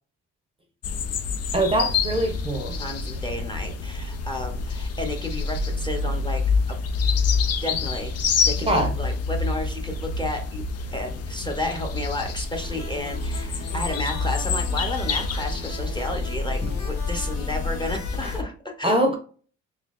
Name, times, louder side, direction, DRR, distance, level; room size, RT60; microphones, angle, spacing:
sound 1, 0.8-18.4, left 4 dB, 55° left, 0.5 m, -27 dB
voice 1, 1.5-2.8 8.6-8.9 16.6-16.7 18.2-18.3 18.8-19.2, right 1 dB, 20° right, 3 dB, 0.7 m, -23 dB
voice 2, 2.8-6.4 6.7-6.8 7.6-8.2 8.4-10.6 10.9-19.0, left 2 dB, 15° left, 2 dB, 0.8 m, -32 dB
sound 2, 12.5-18.4, left 3 dB, 75° left, 1.4 m, -41 dB
3.7 x 2.8 x 2.4 m, 0.40 s
cardioid pair, 90°, 30 cm